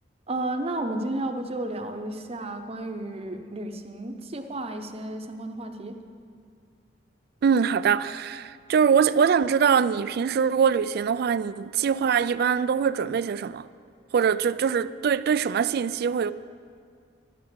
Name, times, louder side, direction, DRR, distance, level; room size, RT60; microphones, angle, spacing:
voice 1, 0.3-6.0, right 1 dB, 35° right, 0.8 m, -32 dB
voice 2, 7.4-13.7 14.1-16.3, right 7 dB, 55° right, 0.3 m, -23 dB
12.0 x 7.3 x 7.7 m
head